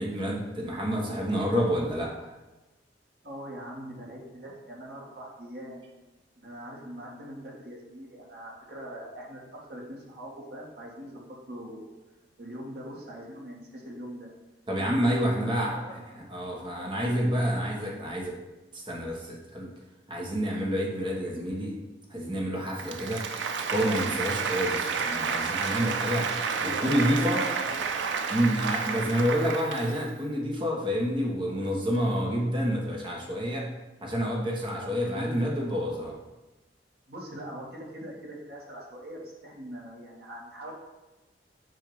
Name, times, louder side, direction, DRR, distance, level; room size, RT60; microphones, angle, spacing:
voice 1, 0.0-2.3 14.7-18.3 18.7-19.7 20.1-21.8 22.1-23.2 23.7-26.3 26.8-27.4 28.3-33.7 34.0-36.1, equal, 30° right, -2 dB, 1.3 m, -28 dB
voice 2, 3.2-5.8 6.4-9.4 9.7-11.9 12.4-14.3 14.8-14.9 15.2-15.9 16.9-17.4 26.5-28.1 28.8-29.0 34.8-35.5 37.1-40.7, equal, 60° right, -3 dB, 1.7 m, -42 dB
Applause, 22.7-30.1, right 5 dB, 90° right, 0.5 m, -31 dB
7.7 x 2.8 x 5.5 m, 1.1 s
head